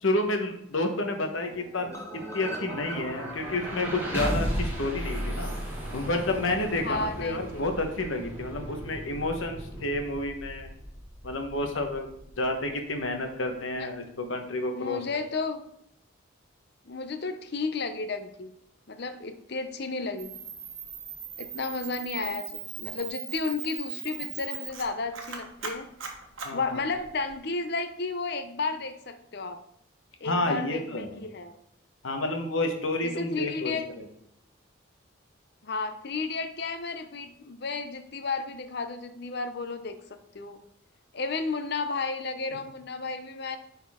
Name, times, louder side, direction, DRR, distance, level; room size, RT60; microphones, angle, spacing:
voice 1, 0.0-1.9 2.3-5.5 5.9-10.7 11.2-12.1 12.4-15.0 26.4-26.8 30.2-31.2 32.0-33.7, left 2 dB, 75° left, 4 dB, 1.2 m, -30 dB
sound 1, 1.2-13.2, equal, 10° right, 1.7 m, -36 dB
sound 2, 1.9-5.9 6.3-6.4 6.7-6.8 7.0-7.1, left 1 dB, 15° left, 0.9 m, -44 dB
voice 2, 6.8-7.7 13.8-13.9 14.7-15.6 16.9-18.5 18.9-20.3 21.4-25.9 26.5-29.6 30.2-31.6 33.0-33.9 35.6-40.6 41.1-43.6, left 4 dB, 50° left, 9 dB, 0.7 m, -33 dB
Camera, 20.2-27.3, right 7 dB, 70° right, 1.2 m, -39 dB
10.0 x 4.3 x 3.6 m, 0.74 s
head